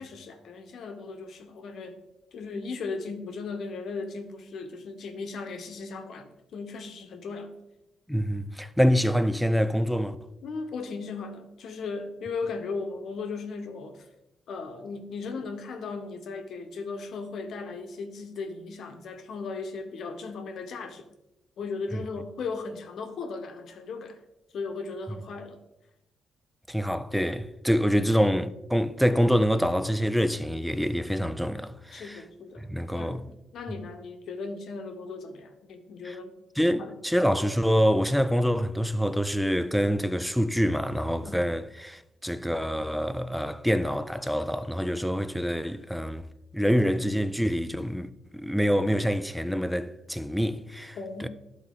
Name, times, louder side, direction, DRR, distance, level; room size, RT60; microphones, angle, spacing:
voice 1, 0.0-2.0 2.3-7.6 10.4-14.1 14.5-21.0 21.6-24.2 24.5-25.6 31.9-36.3 36.8-36.9 41.2-41.4 51.0-51.3, left 4 dB, 65° left, 0.9 m, -37 dB
voice 2, 8.1-10.2 21.9-22.0 26.7-32.2 32.6-33.3 36.0-36.2 36.6-46.2 46.5-51.3, equal, ahead, 0.4 m, -26 dB
11.5 x 4.0 x 3.7 m
cardioid pair, 100°, 0 cm